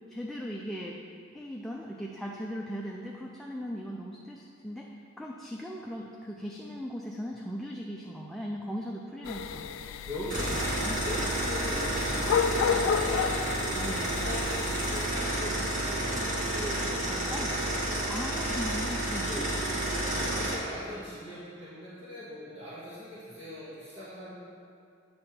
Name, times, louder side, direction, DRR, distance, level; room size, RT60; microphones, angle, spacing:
voice 1, 0.1-1.0 1.3-9.8 10.5-11.0 13.8-14.0 17.3-17.5 18.1-19.3, equal, ahead, -2 dB, 0.4 m, -38 dB
sound 1, 9.3-15.0, left 7 dB, 85° left, 0.3 m, -32 dB
voice 2, 10.1-10.7 11.0-18.2 19.3-24.3, equal, 70° right, -12 dB, 1.8 m, -40 dB
sound 2, 10.3-20.6, right 1 dB, 40° right, 1.5 m, -30 dB
8.6 x 3.4 x 5.6 m, 2.4 s
head